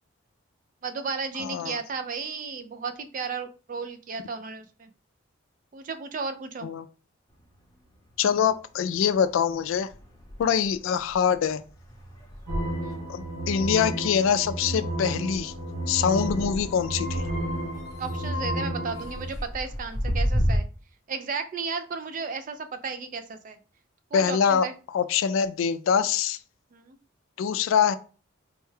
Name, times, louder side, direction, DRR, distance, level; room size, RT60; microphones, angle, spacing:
voice 1, 0.8-4.9 5.7-6.7 12.8-13.1 18.0-20.7 21.1-23.6 24.1-24.7 26.7-27.0, right 5 dB, 40° right, 9 dB, 0.3 m, -34 dB
voice 2, 1.4-1.8 6.6-6.8 8.2-9.9 10.4-11.6 13.1-15.5 15.9-17.3 24.1-26.4 27.4-28.0, left 7 dB, 80° left, 12 dB, 0.3 m, -24 dB
sound 1, 7.3-8.5 8.9-20.6, equal, 15° left, 0.8 m, -34 dB
sound 2, 12.5-19.3, right 1 dB, 80° right, 1.3 m, -32 dB
4.3 x 2.2 x 3.2 m, 0.37 s
head